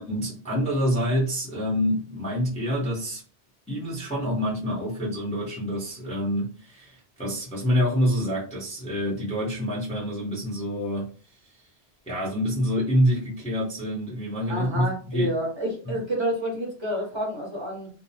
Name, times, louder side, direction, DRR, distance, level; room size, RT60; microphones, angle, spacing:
voice 1, 0.0-3.2 3.7-11.1 12.1-15.4 15.8-16.0, equal, 5° left, 0.7 m, -27 dB
voice 2, 14.5-17.9, right 1 dB, 25° right, 0.7 m, -29 dB
2.6 x 2.0 x 2.7 m
omnidirectional pair, 1.2 m